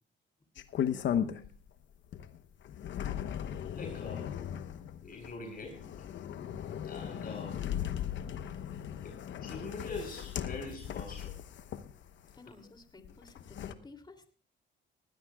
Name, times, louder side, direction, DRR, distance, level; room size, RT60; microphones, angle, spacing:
sound 1, 0.6-1.7 2.1-12.4 13.0-13.7, left 9 dB, 70° left, 1.0 m, -37 dB
voice 1, 0.9-1.5 3.7-4.4 5.0-5.9 6.8-7.7 9.0-9.1 9.4-11.3, left 3 dB, 50° left, 3 dB, 4.5 m, -43 dB
voice 2, 12.3-14.3, left 3 dB, 20° left, 8 dB, 2.9 m, -54 dB
20.5 x 16.5 x 2.4 m, 0.39 s
cardioid pair, 90°, 20 cm